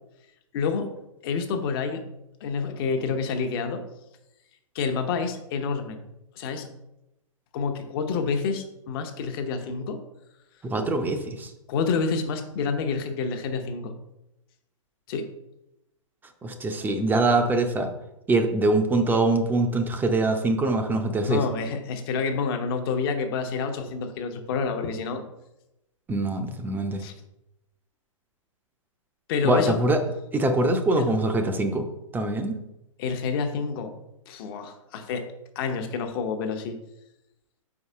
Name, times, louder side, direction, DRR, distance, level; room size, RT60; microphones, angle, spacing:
voice 1, 0.5-0.9 1.2-2.0 2.4-3.8 4.7-6.0 6.4-6.7 7.5-10.0 11.7-13.9 15.1-15.3 21.3-25.2 27.0-27.1 29.3-29.8 30.9-31.1 33.0-33.9 34.3-36.8, left 5 dB, 45° left, 6 dB, 1.0 m, -28 dB
voice 2, 10.6-11.5 16.4-17.9 18.3-21.4 26.1-27.0 29.4-30.0 30.3-31.9 32.1-32.6, right 2 dB, 10° right, 6 dB, 0.7 m, -23 dB
4.9 x 4.8 x 5.5 m, 0.89 s
figure-of-eight pair, 120°, 17 cm